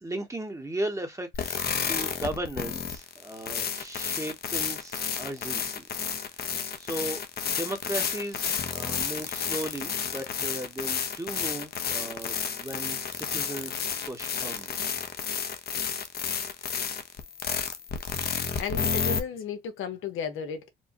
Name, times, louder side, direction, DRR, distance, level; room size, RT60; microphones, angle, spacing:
voice 1, 0.0-5.8 6.8-7.2 7.5-14.8, right 1 dB, 15° right, 1.1 m, -36 dB
sound 1, 1.3-19.2, left 7 dB, 50° left, 0.9 m, -31 dB
voice 2, 18.6-20.7, left 6 dB, 90° left, 1.2 m, -34 dB
4.5 x 2.2 x 2.9 m
cardioid pair, 90°, 20 cm